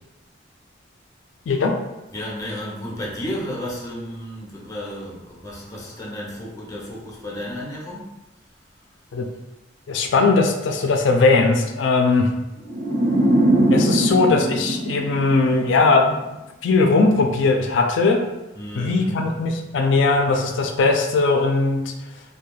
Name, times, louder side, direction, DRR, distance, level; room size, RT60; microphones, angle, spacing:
voice 1, 2.1-8.1 18.5-19.3, equal, 20° left, -4 dB, 0.6 m, -32 dB
voice 2, 9.9-12.3 13.7-16.2 16.6-18.2 18.7-21.9, left 3 dB, 70° left, 3 dB, 0.3 m, -19 dB
sound 1, 12.7-15.9, right 1 dB, 45° right, 0.7 m, -20 dB
2.3 x 2.2 x 3.0 m, 1.0 s
head